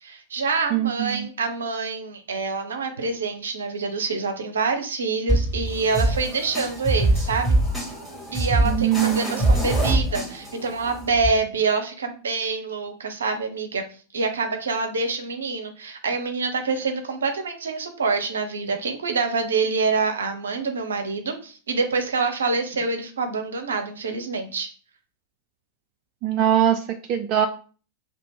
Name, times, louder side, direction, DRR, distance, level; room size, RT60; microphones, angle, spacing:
voice 1, 0.0-7.6 8.3-13.8 14.1-24.7, right 4 dB, 75° right, 6 dB, 0.7 m, -26 dB
voice 2, 0.7-1.3 8.6-9.5 26.2-26.8 27.1-27.5, right 10 dB, 45° right, 6 dB, 0.4 m, -22 dB
sound 1, 5.3-11.3, right 1 dB, 5° left, 1.9 m, -24 dB
2.9 x 2.8 x 3.6 m, 0.38 s
figure-of-eight pair, 90°, 0 cm